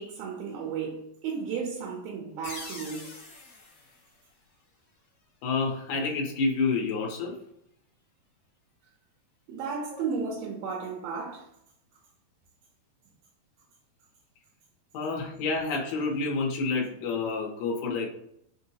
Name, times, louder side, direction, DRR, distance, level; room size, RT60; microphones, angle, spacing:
voice 1, 0.0-3.1 9.5-11.5, right 5 dB, 75° right, 2.4 m, -34 dB
sound 1, 2.4-5.0, left 3 dB, 55° left, 1.7 m, -45 dB
voice 2, 5.4-7.4 9.9-10.0 14.9-18.1, left 4 dB, 75° left, 2.2 m, -29 dB
6.1 x 2.1 x 2.8 m
omnidirectional pair, 4.7 m